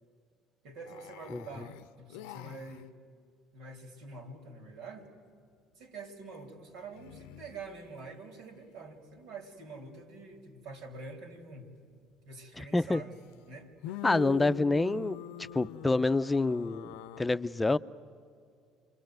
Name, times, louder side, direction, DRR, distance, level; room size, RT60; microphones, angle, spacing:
voice 1, 0.6-2.9 3.5-5.1 5.8-11.7 12.3-13.2 13.5-13.7, right 3 dB, 75° right, 3.7 m, -46 dB
sound 1, 0.9-2.8 6.9-7.9 12.9-13.0 13.8-17.2, left 12 dB, 80° left, 0.6 m, -43 dB
voice 2, 12.6-13.0 14.0-15.2 15.5-16.9 17.2-17.8, left 2 dB, 15° left, 0.7 m, -27 dB
28.5 x 23.0 x 7.9 m
hypercardioid pair, 70°, 0 cm